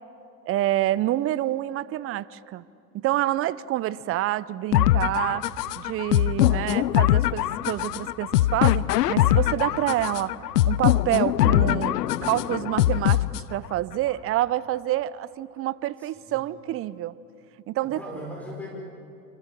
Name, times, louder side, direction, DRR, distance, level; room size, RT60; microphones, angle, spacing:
voice 1, 0.5-2.6 2.9-5.4 5.8-10.3 10.7-12.0 12.2-17.2 17.7-18.0, right 14 dB, 30° right, 19 dB, 0.6 m, -27 dB
sound 1, 4.7-13.7, left 14 dB, 80° left, 0.7 m, -22 dB
voice 2, 16.0-16.4 17.8-18.7, equal, 5° left, -2 dB, 5.3 m, -40 dB
27.0 x 25.0 x 7.6 m, 2.6 s
hypercardioid pair, 95°, 48 cm